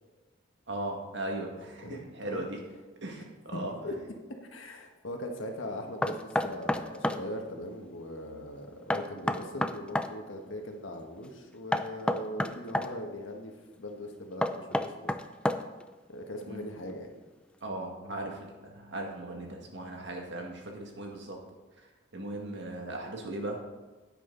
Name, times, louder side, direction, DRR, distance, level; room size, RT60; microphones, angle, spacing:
voice 1, 0.7-2.6 3.0-3.7 16.5-16.8 17.6-21.4 21.8-23.6, right 1 dB, 60° right, 1 dB, 1.9 m, -38 dB
voice 2, 1.8-2.5 3.5-4.0 4.5-15.1 16.1-17.1, left 1 dB, 80° left, 3 dB, 1.5 m, -40 dB
Knock, 6.0-7.2 8.9-10.1 11.7-12.9 14.4-15.8, left 1 dB, 5° left, 0.4 m, -29 dB
10.0 x 9.1 x 3.9 m, 1.3 s
head